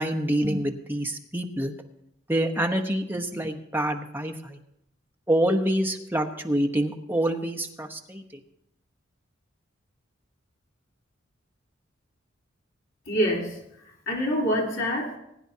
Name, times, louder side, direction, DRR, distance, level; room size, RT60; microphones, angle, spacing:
voice 1, 0.0-1.7 2.3-4.6 5.3-8.2, right 1 dB, 10° right, 4 dB, 0.9 m, -26 dB
voice 2, 13.1-15.2, equal, 75° left, -2 dB, 3.3 m, -26 dB
20.5 x 9.8 x 2.8 m, 0.80 s
head